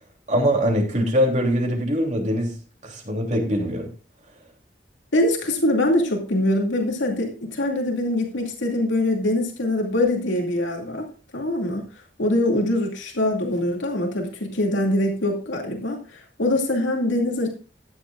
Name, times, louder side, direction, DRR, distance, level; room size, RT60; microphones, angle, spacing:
voice 1, 0.3-2.5 2.8-3.9, equal, 40° right, 1 dB, 3.2 m, -22 dB
voice 2, 5.1-11.1 11.3-11.8 12.2-17.5, left 1 dB, 80° left, 1 dB, 2.5 m, -23 dB
14.0 x 10.0 x 2.5 m, 0.35 s
head